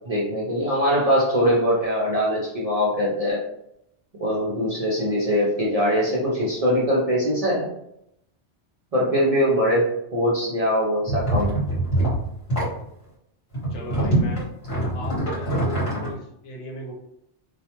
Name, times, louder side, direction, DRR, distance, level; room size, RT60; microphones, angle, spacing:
voice 1, 0.0-3.4 4.2-7.7 8.9-11.6, equal, 45° right, -5 dB, 0.5 m, -22 dB
sound 1, 11.1-12.8 13.5-16.1, right 1 dB, 55° left, 1.2 m, -24 dB
voice 2, 13.7-14.5 14.9-16.9, left 2 dB, 80° left, 0 dB, 1.0 m, -36 dB
2.4 x 2.1 x 2.8 m, 0.77 s
omnidirectional pair, 1.2 m